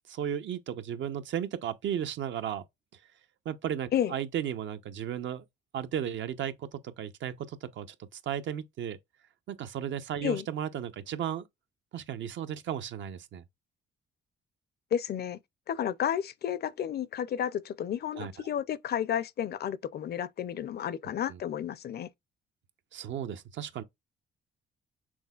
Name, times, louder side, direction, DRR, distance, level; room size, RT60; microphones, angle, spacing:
voice 1, 0.1-2.6 3.4-5.4 5.7-7.9 8.1-9.0 9.5-11.5 11.9-13.4 18.1-18.3 21.3-21.4 22.9-23.8, right 9 dB, 70° right, 0.8 m, -35 dB
voice 2, 14.9-15.4 15.7-22.1, left 9 dB, 55° left, 0.5 m, -31 dB
6.2 x 3.7 x 2.3 m
cardioid pair, 90°, 20 cm